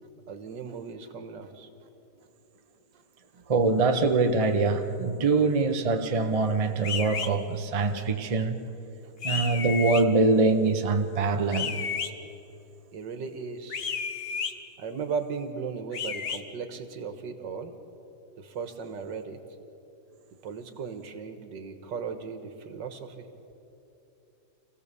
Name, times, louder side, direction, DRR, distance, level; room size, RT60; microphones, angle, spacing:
voice 1, 0.3-1.7 2.9-3.0 12.9-13.8 14.8-17.7 18.4-19.4 20.4-23.3, right 5 dB, 80° right, 2.0 m, -36 dB
voice 2, 3.5-8.6 9.2-11.9, right 3 dB, 30° right, 0.8 m, -24 dB
sound 1, 6.8-7.3 9.2-10.0 11.5-12.1 13.7-14.5 15.9-16.4, left 6 dB, 40° left, 0.9 m, -32 dB
26.5 x 16.0 x 6.9 m
omnidirectional pair, 1.9 m